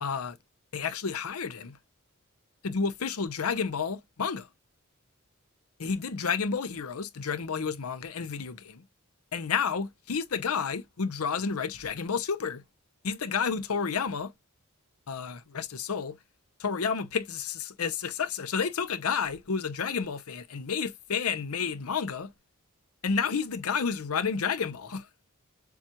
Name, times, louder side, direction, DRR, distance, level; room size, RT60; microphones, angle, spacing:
voice 1, 0.0-0.4 0.7-1.8 2.6-4.5 5.8-8.8 9.3-12.6 13.0-14.3 15.1-16.2 16.6-22.3 23.0-25.1, left 6 dB, 85° left, 0.7 m, -30 dB
7.0 x 2.3 x 2.9 m
head